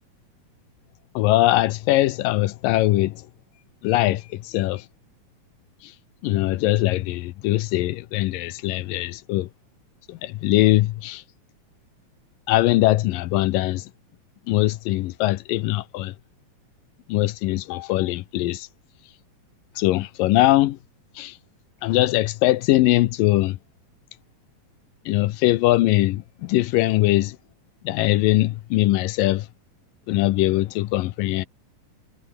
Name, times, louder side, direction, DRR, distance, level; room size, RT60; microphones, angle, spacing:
voice 1, 1.2-3.2 3.8-4.8 6.2-9.5 10.1-11.2 12.5-13.9 14.5-16.1 17.1-18.7 19.8-20.8 21.2-21.3 21.8-23.6 25.1-27.4 27.8-29.5 30.1-31.5, left 16 dB, 75° left, 2.4 m, -21 dB
omnidirectional pair, 4.1 m